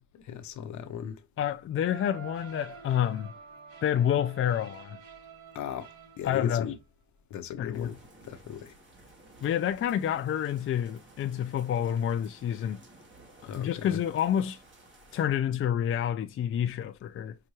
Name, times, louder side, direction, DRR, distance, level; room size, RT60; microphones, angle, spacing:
voice 1, 0.1-1.2 5.5-5.9 6.2-6.8 7.3-8.0 8.2-8.7 13.5-14.0, left 9 dB, 70° left, 0.8 m, -37 dB
voice 2, 1.4-3.3 3.8-5.0 6.2-6.7 7.6-8.0 9.4-12.8 13.6-14.6 15.1-17.4, left 9 dB, 45° left, 0.5 m, -28 dB
sound 1, 1.9-6.7, right 6 dB, 75° right, 1.3 m, -48 dB
sound 2, 7.7-15.3, right 2 dB, 40° right, 2.0 m, -55 dB
5.6 x 2.5 x 3.1 m
cardioid pair, 90°, 30 cm